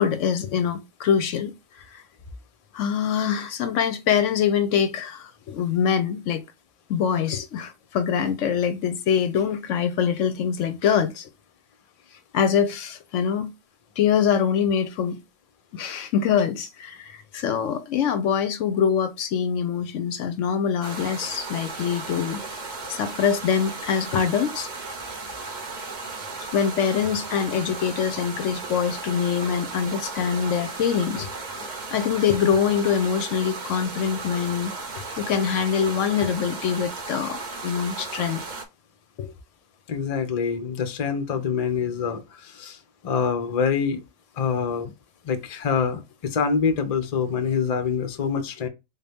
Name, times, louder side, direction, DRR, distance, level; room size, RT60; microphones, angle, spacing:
voice 1, 0.0-1.5 1.9-2.0 2.7-6.4 6.9-11.3 12.3-13.5 14.0-15.2 15.7-22.4 22.9-24.7 26.5-34.7 35.2-38.4 39.2-39.3 48.3-48.4, left 7 dB, 70° left, 0.9 m, -24 dB
sound 1, 20.8-38.7, right 3 dB, 40° right, 0.8 m, -35 dB
voice 2, 39.9-42.8 43.0-44.0 44.4-44.9 45.2-48.7, left 6 dB, 40° left, 0.5 m, -25 dB
4.1 x 2.7 x 3.4 m
omnidirectional pair, 1.5 m